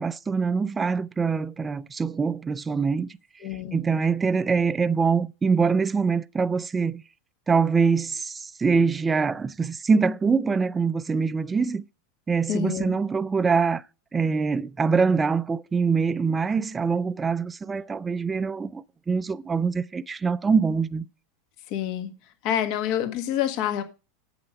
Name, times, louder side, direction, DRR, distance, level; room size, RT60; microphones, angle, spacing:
voice 1, 0.0-3.1 3.7-7.0 7.5-11.8 12.3-13.8 14.1-21.0, right 5 dB, 15° right, 0.4 m, -24 dB
voice 2, 3.4-3.8 12.5-12.9 21.7-22.1 22.4-23.8, left 10 dB, 55° left, 1.4 m, -27 dB
8.8 x 6.7 x 5.2 m
supercardioid pair, 120°, 0 cm